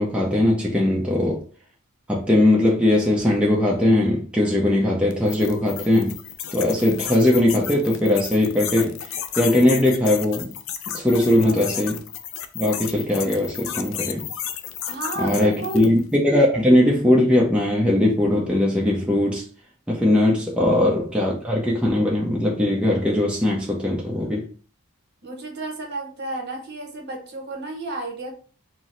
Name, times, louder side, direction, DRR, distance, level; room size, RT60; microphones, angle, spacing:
voice 1, 0.0-1.4 2.1-6.1 6.5-9.0 9.4-10.5 10.9-12.0 12.5-14.2 15.2-19.4 19.9-24.5, left 1 dB, 5° right, 0.6 m, -20 dB
sound 1, 5.1-16.0, left 9 dB, 65° left, 0.4 m, -33 dB
voice 2, 11.4-11.8 14.8-15.8 25.2-28.3, right 2 dB, 50° right, 1.1 m, -32 dB
4.5 x 2.0 x 3.8 m
head